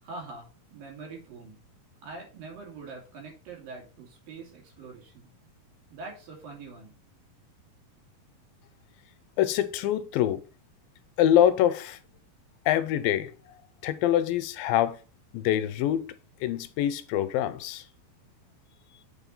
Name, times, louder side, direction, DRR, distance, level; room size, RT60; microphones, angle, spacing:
voice 1, 0.0-1.6 2.0-5.3 5.9-6.9, right 3 dB, 70° right, 4.3 m, -44 dB
voice 2, 9.4-10.4 11.2-12.0 12.7-13.3 13.8-15.0 15.3-16.1 16.4-17.8, left 11 dB, 85° left, 2.3 m, -25 dB
8.0 x 4.3 x 5.4 m
omnidirectional pair, 4.2 m